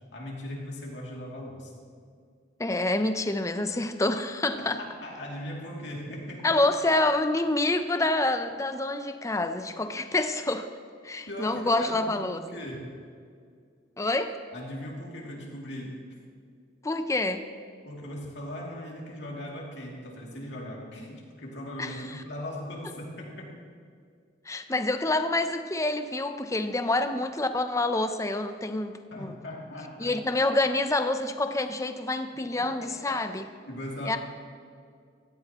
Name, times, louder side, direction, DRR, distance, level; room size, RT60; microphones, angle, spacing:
voice 1, 0.1-1.7 4.6-6.6 11.3-12.9 14.5-16.0 17.8-23.5 29.1-30.2 32.5-33.2 33.6-34.2, left 1 dB, 70° left, -2 dB, 2.8 m, -39 dB
voice 2, 2.6-4.8 6.4-10.7 11.0-12.4 14.0-14.4 16.8-17.4 21.8-22.0 24.5-29.4 30.0-33.4 34.1-34.2, left 2 dB, 15° left, 8 dB, 0.6 m, -27 dB
16.5 x 14.0 x 3.0 m, 2.2 s
head